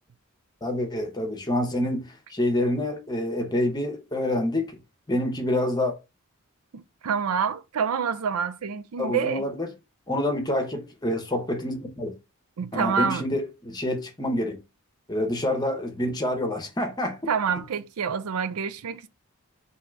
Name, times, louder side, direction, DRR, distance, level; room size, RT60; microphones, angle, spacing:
voice 1, 0.6-2.0 2.3-4.7 5.1-5.9 9.0-9.7 10.1-12.1 12.7-14.6 15.1-17.2, left 1 dB, 20° left, 0.8 m, -27 dB
voice 2, 6.7-9.4 12.6-13.2 17.3-19.1, right 6 dB, 85° right, 0.4 m, -27 dB
3.7 x 2.8 x 4.4 m
head